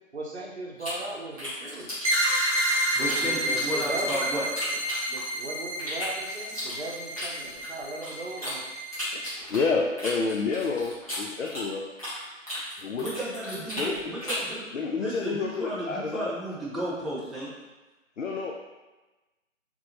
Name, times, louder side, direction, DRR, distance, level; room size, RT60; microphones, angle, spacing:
voice 1, 0.1-1.9 3.0-4.2 5.1-8.6, right 2 dB, 55° right, -1 dB, 0.8 m, -37 dB
Lip Smacking Sound, 0.8-3.2 3.5-5.4 5.8-8.5 8.9-12.2 12.4-14.5, equal, 25° left, 1.1 m, -35 dB
sound 1, 2.0-9.3, equal, 25° right, 1.1 m, -30 dB
voice 2, 2.9-4.5 13.0-14.6 15.0-17.5, right 1 dB, ahead, -8 dB, 0.4 m, -33 dB
voice 3, 9.5-11.8 12.8-13.1 13.8-14.0 14.7-16.3 18.2-18.5, left 4 dB, 65° left, 0 dB, 0.5 m, -29 dB
3.2 x 2.6 x 3.4 m, 1.1 s
figure-of-eight pair, 180°, 40 cm